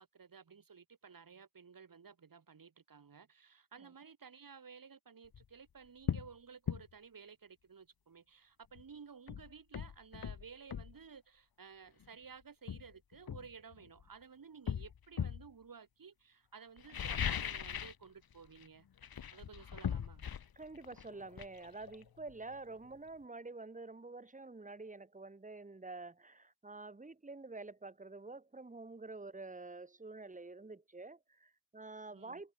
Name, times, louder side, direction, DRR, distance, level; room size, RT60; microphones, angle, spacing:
voice 1, 0.0-18.9 19.3-20.2 32.1-32.4, right 6 dB, 70° right, 4.6 m, -55 dB
sound 1, 5.2-5.4 6.0-6.3 6.7-6.8 8.7-8.8 9.3-10.9 12.0-12.1 12.7-14.1 14.7-15.5 16.8-18.0 18.3-18.7 19.0-22.5 22.8-22.9, left 8 dB, 90° left, 1.3 m, -39 dB
voice 2, 20.6-32.5, right 3 dB, 20° right, 2.2 m, -48 dB
wide cardioid pair, 135°, 35 cm